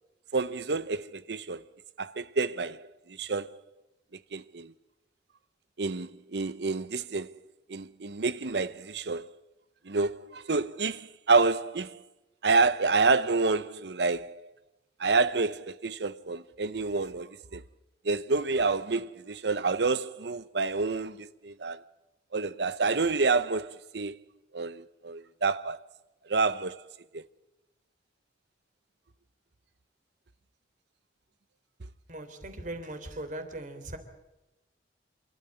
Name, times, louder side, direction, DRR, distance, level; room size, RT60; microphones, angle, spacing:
voice 1, 0.3-1.6 2.0-3.6 4.3-4.7 5.8-7.4 7.7-9.3 9.9-12.0 12.4-14.5 15.0-17.6 18.0-21.8 22.3-24.2 24.5-25.8 26.3-26.8 27.1-27.2, right 4 dB, 70° right, 0.8 m, -28 dB
voice 2, 32.1-34.0, right 1 dB, 45° right, 3.4 m, -39 dB
28.0 x 13.0 x 9.9 m
head